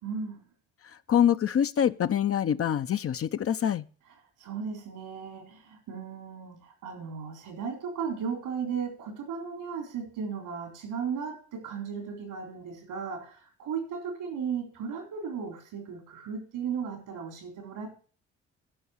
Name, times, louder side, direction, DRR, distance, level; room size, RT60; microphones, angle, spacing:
voice 1, 0.0-0.4 4.4-17.9, right 6 dB, 80° right, 3.9 m, -36 dB
voice 2, 1.1-3.8, left 9 dB, 45° left, 0.6 m, -25 dB
11.0 x 5.5 x 8.4 m
supercardioid pair, 55°, 32 cm